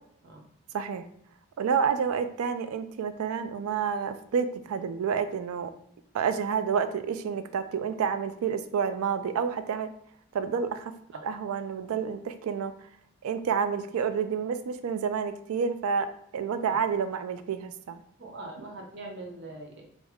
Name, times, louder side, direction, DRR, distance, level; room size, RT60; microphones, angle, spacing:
voice 1, 0.7-1.0 1.6-5.7 6.1-9.9 10.3-10.9 11.2-12.7 13.2-16.1 16.3-18.0, right 6 dB, 80° right, 11 dB, 0.3 m, -29 dB
voice 2, 18.2-19.8, right 2 dB, 55° right, 0 dB, 0.7 m, -42 dB
3.5 x 2.1 x 3.4 m, 0.71 s
head